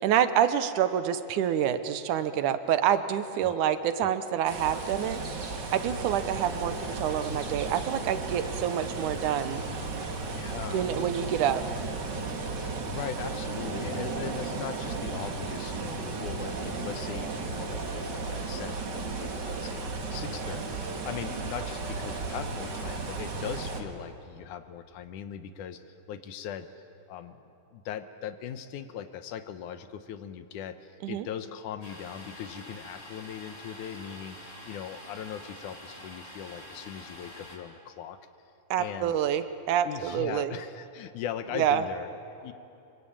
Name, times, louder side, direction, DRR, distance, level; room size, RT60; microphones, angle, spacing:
voice 1, 0.0-5.2 5.7-9.6 10.7-11.6 31.0-31.3 38.7-40.6 41.5-41.8, right 9 dB, 75° right, 11 dB, 2.4 m, -27 dB
sound 1, 4.5-23.8, right 3 dB, 40° right, 2.2 m, -34 dB
voice 2, 10.3-10.9 12.6-26.7 27.1-27.4 27.7-38.2 38.8-39.2 39.9-42.5, left 9 dB, 80° left, 11 dB, 2.4 m, -40 dB
Domestic sounds home sounds, 31.8-37.6, left 1 dB, 10° left, 2.8 m, -46 dB
25.5 x 24.0 x 8.7 m, 2.8 s
omnidirectional pair, 3.7 m